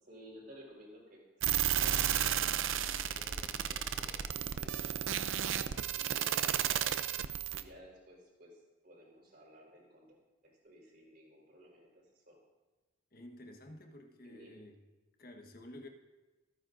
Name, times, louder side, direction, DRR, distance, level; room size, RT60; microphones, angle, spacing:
voice 1, 0.0-4.9 5.3-6.4 6.7-6.8 7.2-10.2 10.6-12.4 14.2-14.6, equal, 45° right, -2 dB, 4.1 m, -56 dB
sound 1, 1.4-7.6, right 10 dB, 80° right, 0.6 m, -32 dB
voice 2, 13.1-14.8 15.2-15.9, left 1 dB, 45° left, 3 dB, 1.3 m, -51 dB
26.0 x 9.7 x 2.6 m, 1.2 s
head